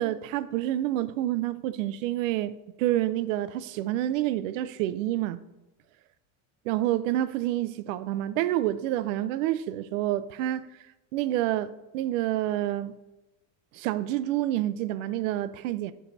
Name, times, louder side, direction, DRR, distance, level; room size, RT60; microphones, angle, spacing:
voice 1, 0.0-2.5 2.8-5.4 6.7-10.7 11.1-12.9 13.7-15.9, right 13 dB, 70° right, 0.6 m, -28 dB
8.1 x 4.9 x 4.1 m
supercardioid pair, 150°, 40 cm